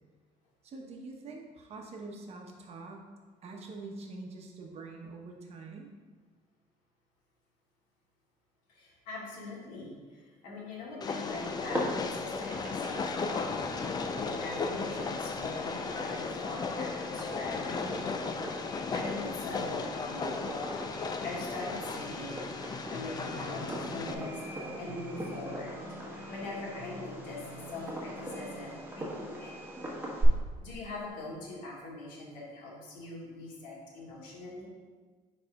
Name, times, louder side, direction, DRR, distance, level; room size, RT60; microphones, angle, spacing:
voice 1, 0.6-3.1 3.4-5.9, right 3 dB, 50° right, 1 dB, 1.0 m, -45 dB
voice 2, 8.7-13.5 14.2-18.0 18.9-20.5 21.2-25.8 26.3-27.4 27.7-29.6 30.0-30.1 30.6-34.7, left 2 dB, 85° left, -4 dB, 1.7 m, -42 dB
Train, 11.0-24.1, left 4 dB, 30° left, 0.4 m, -35 dB
Fireworks, 11.2-30.2, right 1 dB, 15° right, 1.3 m, -42 dB
sound 1, 22.9-28.7, left 1 dB, 70° left, 1.8 m, -47 dB
9.7 x 4.2 x 2.3 m, 1.4 s
cardioid pair, 105°, 14 cm